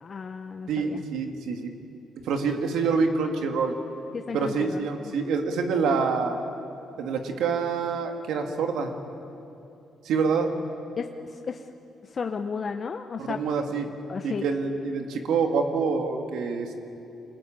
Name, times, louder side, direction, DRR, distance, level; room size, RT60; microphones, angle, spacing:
voice 1, 0.0-1.0 4.1-5.1 11.0-11.1 11.5-11.6 12.1-13.4 14.1-14.4, left 5 dB, 40° left, 6 dB, 0.9 m, -33 dB
voice 2, 0.7-1.7 2.3-3.7 4.3-6.4 7.0-8.9 10.0-10.5 13.2-13.9 14.2-16.7, right 5 dB, 80° right, 4 dB, 2.3 m, -26 dB
24.5 x 20.0 x 8.9 m, 2.8 s
cardioid pair, 90°, 0 cm